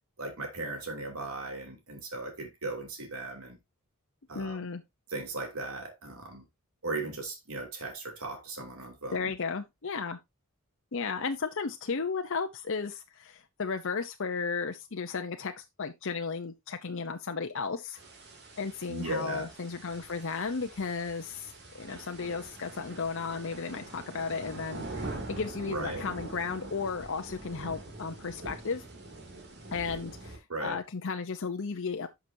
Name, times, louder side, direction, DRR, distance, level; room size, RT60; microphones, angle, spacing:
voice 1, 0.2-3.6 4.3-4.6 5.1-6.4 6.8-9.3 18.9-19.5 25.6-26.0 30.5-30.8, right 2 dB, 75° right, 3.0 m, -37 dB
voice 2, 4.3-4.8 9.1-10.2 10.9-18.0 18.6-28.8 29.7-32.1, left 5 dB, 60° left, 0.7 m, -34 dB
sound 1, 18.0-30.4, right 2 dB, 50° right, 2.7 m, -44 dB
11.5 x 6.1 x 2.7 m
head